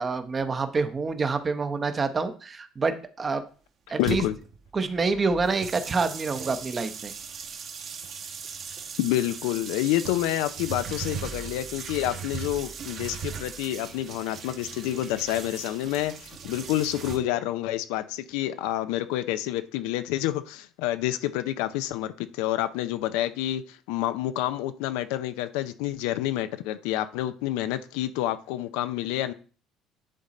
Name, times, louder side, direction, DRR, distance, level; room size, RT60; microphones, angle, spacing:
voice 1, 0.0-3.4 3.9-4.2 4.7-7.1, right 4 dB, 25° right, 9 dB, 0.9 m, -27 dB
voice 2, 4.0-4.3 9.0-23.6 23.9-29.3, left 14 dB, 90° left, 11 dB, 0.6 m, -28 dB
sound 1, 4.0-17.2, right 6 dB, 50° right, 1.3 m, -38 dB
10.0 x 3.9 x 4.2 m, 0.39 s
cardioid pair, 115°, 0 cm